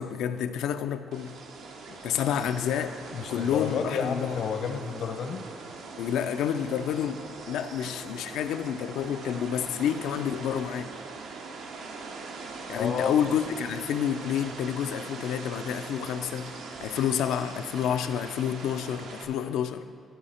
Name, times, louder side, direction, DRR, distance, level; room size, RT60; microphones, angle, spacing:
voice 1, 0.0-1.4 2.0-3.0 3.3-4.4 6.0-10.9 12.7-16.5 16.8-19.8, left 9 dB, 90° left, 0.4 m, -29 dB
sound 1, 1.1-19.2, right 4 dB, 90° right, 0.8 m, -41 dB
voice 2, 3.1-5.4 12.7-13.2, left 6 dB, 70° left, 0.8 m, -31 dB
14.0 x 4.8 x 4.3 m
cardioid pair, 90°, 0 cm